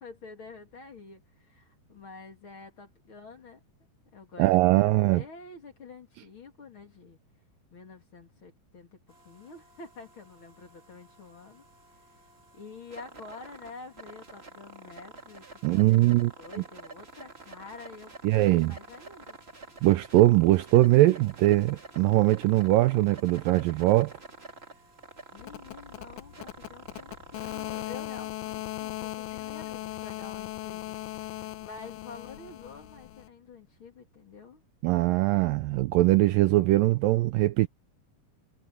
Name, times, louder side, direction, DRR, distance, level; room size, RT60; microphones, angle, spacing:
voice 1, 0.0-3.6 4.1-7.2 7.7-9.0 9.2-11.6 12.0-12.1 12.5-19.4 25.3-34.6, left 4 dB, 35° left, 2.8 m, -48 dB
voice 2, 4.4-5.2 15.6-16.3 18.2-18.7 19.8-24.1 34.8-37.7, right 17 dB, 80° right, 2.1 m, -21 dB
sound 1, 9.1-28.3, right 3 dB, 20° right, 1.7 m, -49 dB
sound 2, 25.4-33.3, left 15 dB, 75° left, 1.9 m, -38 dB
omnidirectional pair, 4.4 m